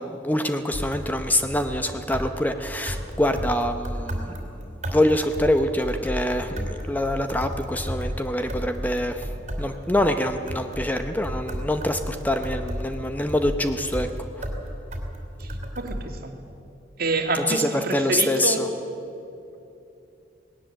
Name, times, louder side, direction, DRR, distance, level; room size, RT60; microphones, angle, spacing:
voice 1, 0.0-4.3 4.9-9.3 9.6-14.1 17.3-18.7, left 1 dB, 10° left, 7 dB, 0.7 m, -25 dB
sound 1, 0.7-16.0, equal, 40° right, 2.7 m, -33 dB
voice 2, 15.8-16.3 17.0-18.7, right 3 dB, 55° right, 4 dB, 2.0 m, -27 dB
19.0 x 18.0 x 7.7 m, 2.7 s
head